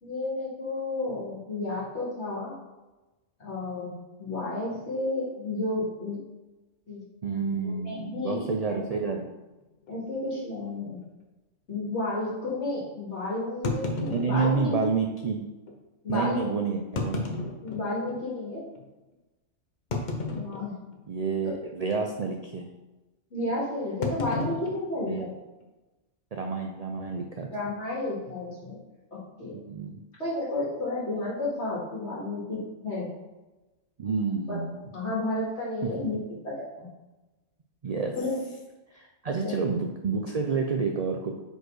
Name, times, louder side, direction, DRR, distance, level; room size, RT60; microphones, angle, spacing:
voice 1, 0.0-2.5 3.4-6.2 6.9-7.0 7.6-8.8 9.9-11.0 11.7-14.7 16.0-16.5 17.6-18.6 20.3-20.7 23.3-25.3 27.5-28.8 29.1-29.6 30.2-33.1 34.5-34.6 34.9-36.2 36.4-36.9 38.1-38.4 39.2-39.6, left 2 dB, 60° left, -6 dB, 2.4 m, -32 dB
voice 2, 7.2-9.3 14.0-15.5 16.1-17.3 21.1-22.7 25.0-25.3 26.3-27.5 29.5-30.0 34.0-34.9 35.8-36.1 37.8-38.1 38.9-41.3, right 5 dB, 65° right, 3 dB, 0.4 m, -29 dB
sound 1, 8.9-9.1 9.8-9.9 10.2-10.3 10.9-11.1 13.6-14.8 15.7-15.8 16.8-18.2 18.7-18.8 19.9-21.0 21.3-21.6 21.9-22.2 24.0-25.6, left 3 dB, 45° left, 0.8 m, -33 dB
5.0 x 4.3 x 4.6 m, 1.1 s
omnidirectional pair, 1.3 m